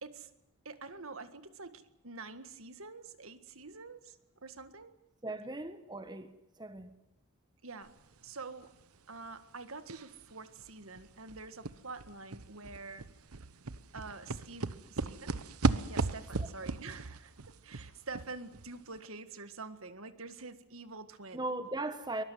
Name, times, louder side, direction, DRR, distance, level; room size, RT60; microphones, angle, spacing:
voice 1, 0.7-5.0 7.6-7.9 8.2-8.7 9.1-13.1 13.9-15.5 15.9-21.4, right 3 dB, 65° right, 11 dB, 1.9 m, -47 dB
voice 2, 5.2-6.3 6.6-6.9 16.4-16.5 21.3-22.2, right 2 dB, 20° right, 10 dB, 1.4 m, -38 dB
sound 1, 9.9-10.2 10.6-10.7 11.0-18.7 19.0-19.1, right 3 dB, 80° right, 1.1 m, -36 dB
23.5 x 21.5 x 9.4 m, 0.84 s
head